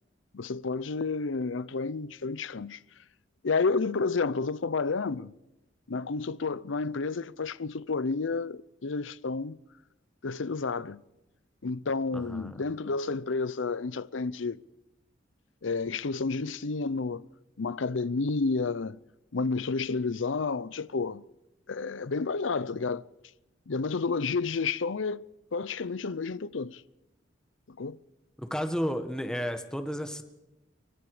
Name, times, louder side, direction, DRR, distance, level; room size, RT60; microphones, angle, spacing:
voice 1, 0.3-2.8 3.4-5.3 5.9-9.6 10.2-11.0 11.6-14.6 15.6-17.2 17.6-19.0 19.3-21.2 21.7-23.0 23.7-25.3 25.5-26.8 27.8-28.0, left 4 dB, 75° left, 0.6 m, -30 dB
voice 2, 12.1-12.6 28.4-30.2, equal, 5° left, 1.7 m, -32 dB
24.5 x 23.5 x 5.0 m
head